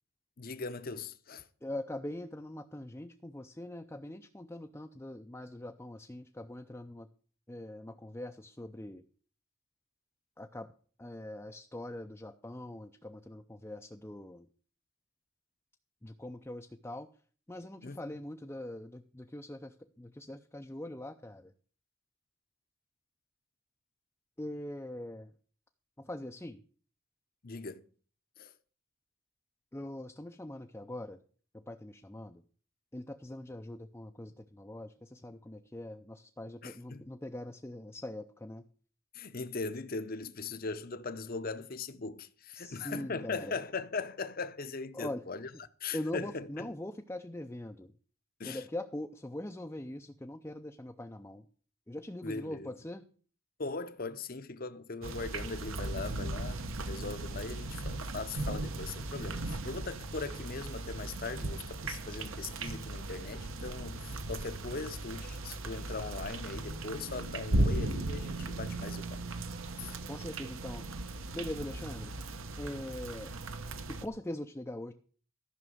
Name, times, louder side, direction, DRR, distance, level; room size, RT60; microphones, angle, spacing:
voice 1, 0.4-1.5 17.8-18.2 27.4-27.8 28.4-28.5 36.6-37.0 39.1-45.5 45.8-46.7 48.4-48.6 52.2-52.7 53.6-69.2 69.8-70.0, left 4 dB, 40° left, 0.8 m, -40 dB
voice 2, 1.6-7.1 7.5-9.0 10.4-10.7 11.0-14.5 16.0-17.1 17.5-21.5 24.4-25.3 26.0-26.6 29.7-31.2 31.7-32.4 32.9-38.6 42.5-43.6 44.9-45.2 45.9-47.9 48.4-51.4 51.9-53.1 70.1-70.8 71.3-72.1 72.6-73.3 73.9-74.9, left 1 dB, 10° left, 0.5 m, -42 dB
sound 1, 55.0-74.1, right 2 dB, 65° right, 1.0 m, -37 dB
14.5 x 6.1 x 7.8 m
head